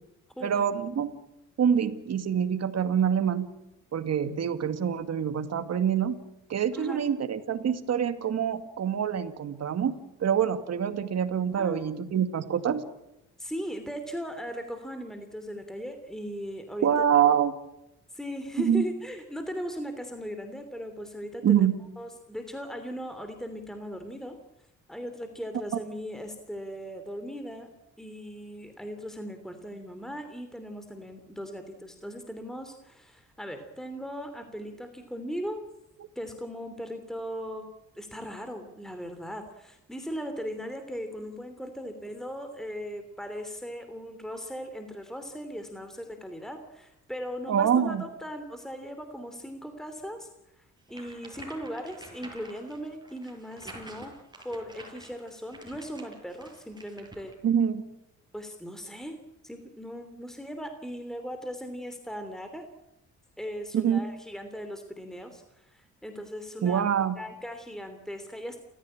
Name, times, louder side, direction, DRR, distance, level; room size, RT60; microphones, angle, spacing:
voice 1, 0.4-1.1 1.6-3.5 3.9-6.2 6.5-12.8 16.8-17.5 18.6-18.9 21.4-21.7 25.7-25.8 47.5-48.0 57.4-57.8 63.7-64.1 66.6-67.2, right 8 dB, 55° right, 9 dB, 2.3 m, -25 dB
voice 2, 11.5-11.9 13.4-16.9 18.1-21.7 22.0-24.4 24.9-27.7 28.0-35.6 36.1-37.7 37.9-50.3 50.6-50.7 50.9-54.1 54.4-57.3 58.3-59.2 59.4-62.7 63.4-66.8 67.2-68.6, equal, ahead, 7 dB, 3.0 m, -38 dB
sound 1, 50.9-57.3, right 2 dB, 15° right, 7.4 m, -48 dB
29.5 x 15.0 x 8.8 m, 0.85 s
cardioid pair, 90°, 30 cm